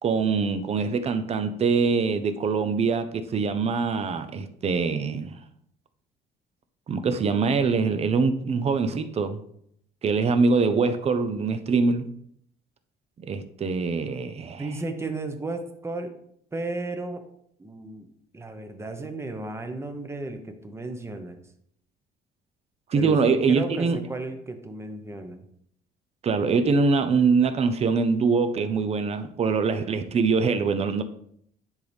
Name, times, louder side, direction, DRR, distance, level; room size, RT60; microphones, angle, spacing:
voice 1, 0.0-5.3 6.9-9.4 10.0-12.1 13.2-14.6 22.9-24.0 26.2-31.0, right 4 dB, 40° right, 0.7 m, -23 dB
voice 2, 14.6-16.1 16.5-17.2 17.6-18.1 18.3-21.4 22.9-25.4, right 2 dB, 15° right, 0.9 m, -34 dB
9.7 x 4.0 x 3.5 m
cardioid pair, 110°, 17 cm